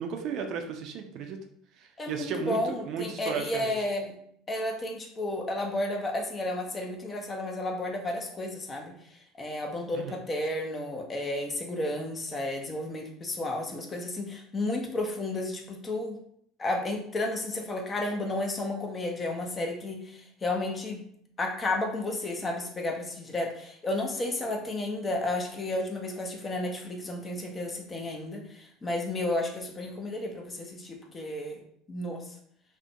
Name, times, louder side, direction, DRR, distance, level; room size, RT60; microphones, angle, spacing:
voice 1, 0.0-1.4 1.8-3.7 9.9-10.2, right 6 dB, 55° right, 4 dB, 0.3 m, -34 dB
voice 2, 2.0-4.1 4.5-8.9 9.4-16.2 16.6-21.1 21.4-31.6 31.9-32.3, left 2 dB, 25° left, 2 dB, 0.5 m, -32 dB
2.4 x 2.1 x 2.7 m, 0.66 s
hypercardioid pair, 75°, 0 cm